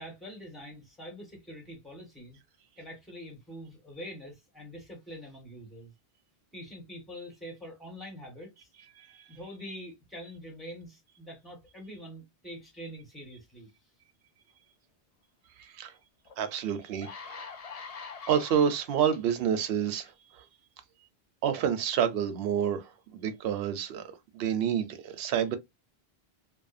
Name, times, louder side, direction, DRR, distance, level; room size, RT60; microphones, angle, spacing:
voice 1, 0.0-2.4 2.8-5.9 6.5-8.7 9.3-13.7, equal, ahead, 1.3 m, -45 dB
voice 2, 15.6-15.9 16.4-17.5 18.3-20.1 20.4-20.5 21.4-24.0 24.3-25.6, right 8 dB, 70° right, 0.8 m, -28 dB
sound 1, 16.2-16.3 16.8-19.2 19.9-20.1, left 5 dB, 50° left, 0.5 m, -43 dB
2.6 x 2.4 x 2.5 m
omnidirectional pair, 1.1 m